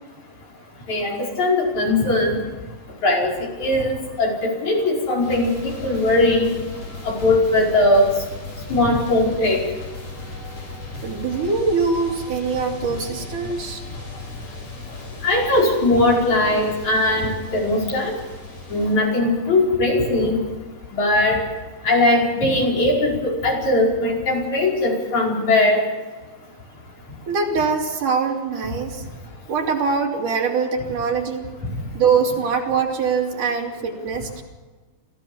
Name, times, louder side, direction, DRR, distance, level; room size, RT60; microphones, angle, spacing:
voice 1, 0.9-2.4 3.0-6.5 7.0-8.1 8.7-9.6 15.2-18.1 18.7-20.4 20.9-21.4 21.8-25.8, left 2 dB, 65° left, -2 dB, 6.4 m, -19 dB
sound 1, 5.2-19.0, left 2 dB, 85° left, 6.8 m, -36 dB
voice 2, 11.0-13.8 27.3-29.1 29.5-31.5 31.9-34.4, right 5 dB, 75° right, 1 dB, 4.1 m, -23 dB
25.0 x 16.0 x 7.1 m, 1.3 s
omnidirectional pair, 3.6 m